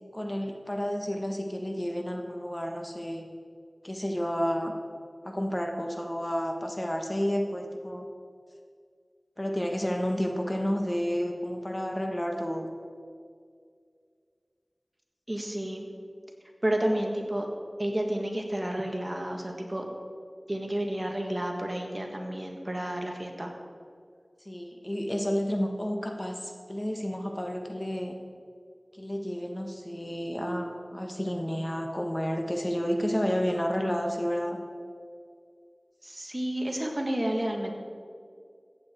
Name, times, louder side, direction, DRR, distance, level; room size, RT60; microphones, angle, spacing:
voice 1, 0.1-3.3 3.8-4.7 5.2-8.1 9.4-12.7 24.4-28.1 28.9-34.6, equal, 25° left, 3 dB, 1.1 m, -31 dB
voice 2, 15.3-15.9 16.6-17.5 17.8-19.8 20.5-23.5 36.0-37.7, right 1 dB, 30° right, 2 dB, 1.6 m, -31 dB
14.5 x 8.9 x 4.4 m, 2.2 s
wide cardioid pair, 55°, 0 cm